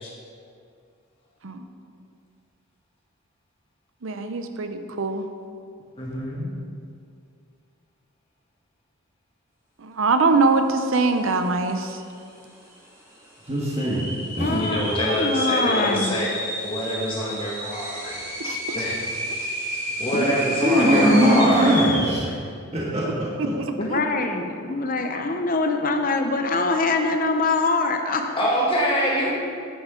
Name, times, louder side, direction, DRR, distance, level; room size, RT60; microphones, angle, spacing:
voice 1, 4.0-5.2 9.8-12.0 18.4-18.8 23.4-23.5 23.9-24.0, right 3 dB, 65° right, 7 dB, 0.7 m, -23 dB
voice 2, 6.0-6.5 14.4-16.3 16.6-18.2 18.7-19.0 20.0-21.9 28.4-29.3, equal, 25° left, -5 dB, 2.1 m, -25 dB
sound 1, 11.3-11.4 11.6-12.2 12.7-12.8 13.5-22.3, equal, 10° right, 2.4 m, -30 dB
voice 3, 13.5-14.1 14.4-14.6 20.6-22.2 22.7-23.0, equal, 30° right, -6 dB, 1.5 m, -19 dB
voice 4, 14.4-16.2 20.1-20.3 23.8-28.4, left 3 dB, 40° left, 5 dB, 0.7 m, -24 dB
10.0 x 8.5 x 3.8 m, 2.3 s
head